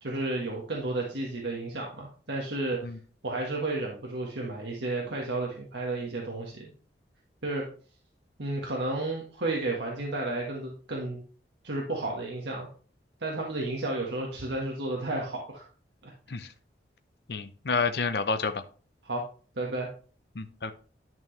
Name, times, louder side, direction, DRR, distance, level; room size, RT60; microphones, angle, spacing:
voice 1, 0.0-2.8 3.2-6.7 7.4-7.7 8.4-11.2 11.6-12.7 13.2-15.6 16.0-16.1 19.0-19.2 19.6-19.9, right 2 dB, 75° right, -1 dB, 1.6 m, -32 dB
voice 2, 17.3-18.6 20.4-20.7, left 4 dB, 60° left, 9 dB, 0.7 m, -29 dB
11.0 x 6.1 x 3.3 m, 0.40 s
head